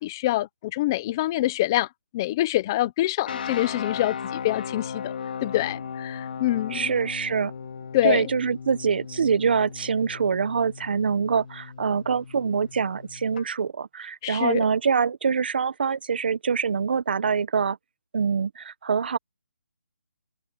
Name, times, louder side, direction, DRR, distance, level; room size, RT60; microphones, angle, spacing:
voice 1, 0.0-1.9 2.1-5.1 5.4-6.9 7.9-8.3 14.2-14.6, left 15 dB, 10° left, 0.8 m, -25 dB
sound 1, 3.2-13.4, left 7 dB, 35° left, 2.9 m, -37 dB
voice 2, 6.7-7.5 8.0-17.8 18.1-19.2, right 6 dB, 35° right, 1.1 m, -25 dB
open air
hypercardioid pair, 175°, 9 cm